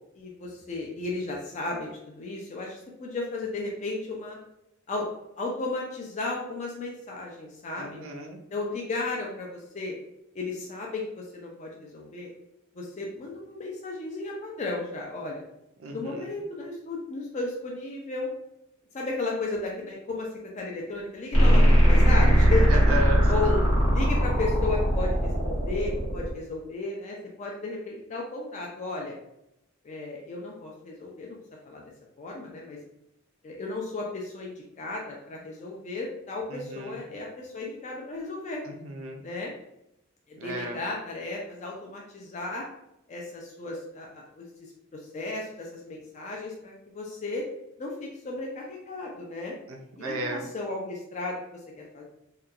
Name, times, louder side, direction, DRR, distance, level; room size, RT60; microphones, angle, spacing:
voice 1, 0.1-4.4 4.9-5.1 5.4-8.0 8.5-10.0 10.3-12.3 12.7-15.4 15.9-18.3 18.9-20.3 20.5-22.8 23.3-23.6 23.9-29.2 29.8-31.4 31.7-31.8 32.2-32.8 33.4-38.6 39.2-39.5 40.3-42.6 43.1-47.5 47.8-49.5 50.0-52.0, left 3 dB, 35° left, -1 dB, 0.4 m, -34 dB
voice 2, 7.8-8.4 15.8-16.3 22.7-23.2 23.5-23.7 36.5-37.0 38.7-39.2 40.4-40.8 49.7-50.4, right 2 dB, 70° right, 2 dB, 0.4 m, -34 dB
sound 1, 21.3-26.3, equal, 90° left, 1.0 m, -20 dB
2.9 x 2.2 x 2.4 m, 0.82 s
head